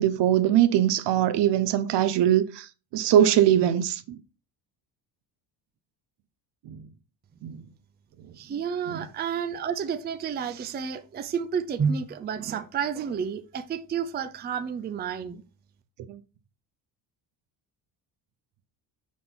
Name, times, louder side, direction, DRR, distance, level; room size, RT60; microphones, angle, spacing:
voice 1, 0.0-4.2 6.7-6.8 7.4-7.6 8.9-9.0 16.1-16.2, right 11 dB, 65° right, 0.7 m, -22 dB
voice 2, 8.4-15.4, right 7 dB, 25° right, 0.4 m, -30 dB
6.1 x 2.9 x 5.4 m
cardioid pair, 130°, 45 cm